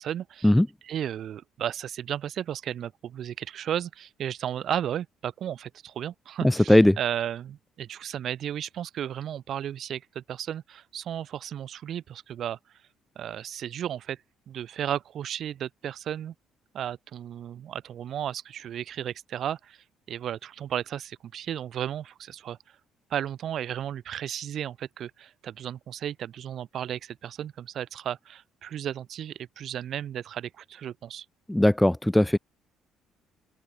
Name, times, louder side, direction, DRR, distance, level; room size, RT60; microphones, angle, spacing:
voice 1, 0.0-0.5 0.8-12.6 13.1-14.2 14.5-16.3 16.7-22.6 23.1-31.2, right 10 dB, 50° right, 3.3 m, -34 dB
voice 2, 31.5-32.4, left 1 dB, 5° left, 0.3 m, -18 dB
open air
cardioid pair, 145°, 0 cm